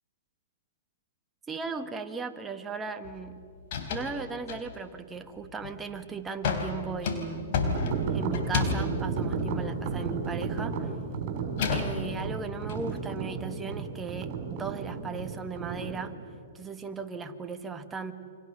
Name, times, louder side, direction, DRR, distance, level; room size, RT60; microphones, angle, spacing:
voice 1, 1.5-3.4 3.9-7.5 8.1-10.9 11.7-16.1 16.5-18.1, right 5 dB, 15° right, 6 dB, 1.6 m, -37 dB
sound 1, 3.0-3.3 3.6-4.2 4.5-5.0 5.4-5.9 6.4-10.5 10.8-12.8, left 5 dB, 55° left, 3.8 m, -32 dB
sound 2, 7.6-16.0, right 5 dB, 45° right, 5.6 m, -33 dB
29.5 x 25.0 x 6.8 m, 2.4 s
hypercardioid pair, 130°, 0 cm